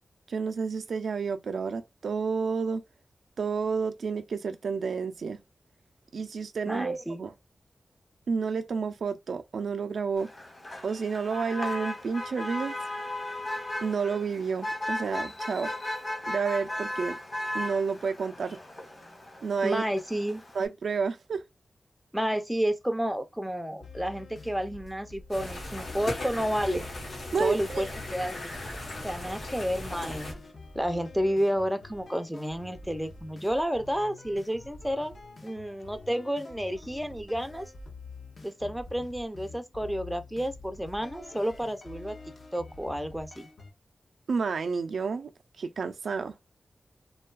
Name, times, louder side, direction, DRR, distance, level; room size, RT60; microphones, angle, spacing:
voice 1, 0.3-2.8 3.4-5.4 6.1-7.3 8.3-10.3 10.8-12.8 13.8-15.7 16.3-17.2 17.5-18.6 19.4-19.8 20.5-21.4 27.3-27.9 44.3-45.3 45.6-46.3, right 5 dB, 85° right, 0.3 m, -30 dB
voice 2, 6.7-7.2 19.6-20.4 22.1-26.8 27.4-28.6 29.0-30.3 30.7-35.2 35.4-37.7 38.4-42.2 42.5-43.5, equal, 5° right, 0.4 m, -31 dB
Motor vehicle (road), 10.2-20.7, left 1 dB, 35° left, 1.1 m, -36 dB
sound 1, 23.8-43.7, left 3 dB, 55° left, 0.6 m, -47 dB
sound 2, 25.3-30.3, left 2 dB, 80° left, 1.1 m, -38 dB
2.6 x 2.3 x 2.2 m
wide cardioid pair, 110°, 0 cm